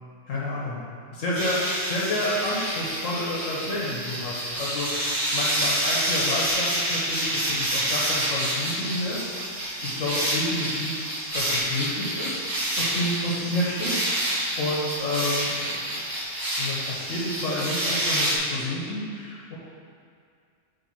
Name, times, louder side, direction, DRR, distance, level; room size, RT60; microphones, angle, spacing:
voice 1, 0.3-0.8 1.1-1.6 1.9-9.3 9.8-11.0 11.3-12.4 12.8-14.3 14.6-15.9 16.6-19.6, left 1 dB, 75° left, -5 dB, 1.4 m, -30 dB
sound 1, 1.3-18.4, right 1 dB, 20° right, 0.8 m, -28 dB
7.1 x 3.5 x 6.1 m, 2.3 s
omnidirectional pair, 1.4 m